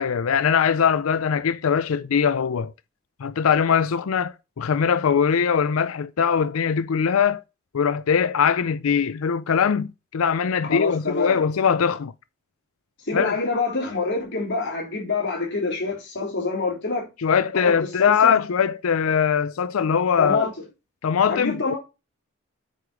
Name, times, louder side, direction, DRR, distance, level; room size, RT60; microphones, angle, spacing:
voice 1, 0.0-2.7 3.2-7.4 7.7-12.1 13.1-13.3 17.2-20.5 21.0-21.7, left 7 dB, 90° left, 0.5 m, -21 dB
voice 2, 10.6-11.4 13.0-17.1 17.5-18.4 20.2-20.5 21.3-21.8, left 3 dB, 55° left, 3.6 m, -26 dB
8.5 x 5.1 x 4.7 m
head